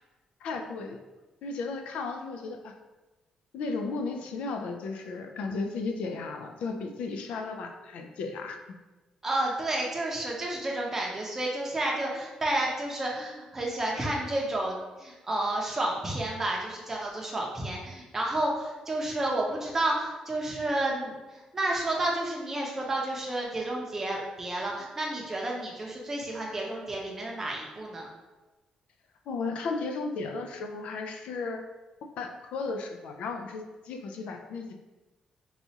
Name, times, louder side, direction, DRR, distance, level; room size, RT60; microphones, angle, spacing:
voice 1, 0.4-1.0 1.4-2.7 3.5-8.8 29.3-31.6 32.2-34.8, left 4 dB, 80° left, 4 dB, 0.4 m, -34 dB
voice 2, 9.2-28.1, right 1 dB, 20° right, -2 dB, 0.6 m, -31 dB
4.1 x 2.3 x 2.7 m, 1.1 s
cardioid pair, 165°, 2 cm